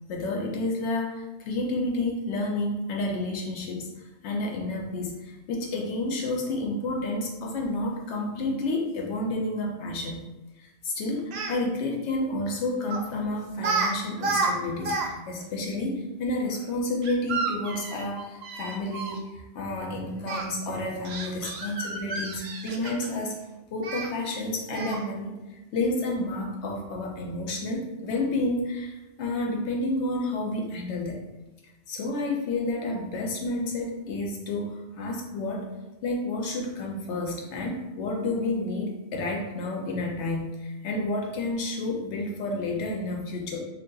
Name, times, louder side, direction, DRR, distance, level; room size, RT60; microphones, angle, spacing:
voice 1, 0.1-3.9 4.2-10.2 10.8-14.9 15.3-23.4 23.7-31.2 31.9-35.7 36.0-43.6, left 2 dB, 80° left, 0 dB, 0.9 m, -30 dB
Speech, 11.2-11.6 12.9-13.1 13.6-13.9 14.2-15.1 15.4-15.5 17.0-19.2 20.2-20.4 21.0-23.2 23.8-24.1 24.7-25.1, right 4 dB, 70° right, 0.8 m, -30 dB
2.6 x 2.4 x 3.7 m, 1.1 s
omnidirectional pair, 1.1 m